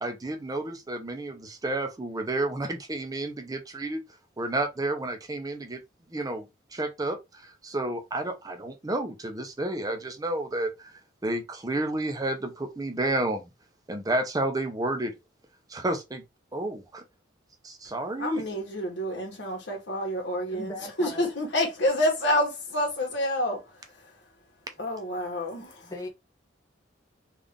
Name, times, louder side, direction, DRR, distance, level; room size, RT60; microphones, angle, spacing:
voice 1, 0.0-4.0 4.4-5.8 6.1-10.9 11.2-13.5 13.9-15.1 15.7-16.2 16.5-17.0 17.6-18.4, right 2 dB, 20° right, 0.5 m, -31 dB
voice 2, 18.2-24.3 24.8-25.9, left 1 dB, 70° left, 1.4 m, -29 dB
voice 3, 20.5-21.3 25.9-26.1, left 1 dB, 20° left, 0.7 m, -38 dB
3.6 x 2.4 x 3.6 m
head